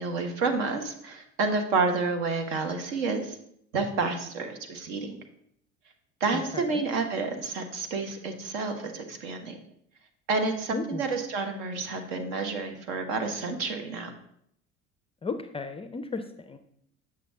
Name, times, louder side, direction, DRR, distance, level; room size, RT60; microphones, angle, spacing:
voice 1, 0.0-3.4 3.7-5.2 6.2-9.6 10.3-14.1, right 4 dB, 60° right, 5 dB, 1.3 m, -29 dB
voice 2, 6.3-6.8 10.7-11.0 15.2-16.6, left 4 dB, 15° left, 9 dB, 0.4 m, -35 dB
8.1 x 6.0 x 3.7 m, 0.71 s
figure-of-eight pair, 65°, 38 cm